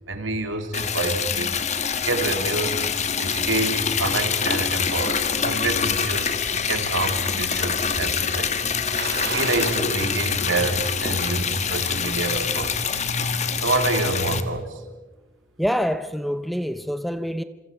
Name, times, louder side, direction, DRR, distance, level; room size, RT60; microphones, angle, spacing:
voice 1, 0.1-1.5 2.0-2.8 3.2-9.0 9.3-13.0 13.6-14.8, right 3 dB, 90° right, 3.3 m, -27 dB
Liquid, 0.7-14.4, left 6 dB, 35° left, 1.4 m, -25 dB
sound 1, 9.0-10.0 10.4-10.5 12.0-12.8 13.2-13.3, right 4 dB, 65° right, 4.1 m, -32 dB
voice 2, 15.6-17.4, equal, ahead, 0.7 m, -26 dB
27.5 x 26.5 x 5.5 m
head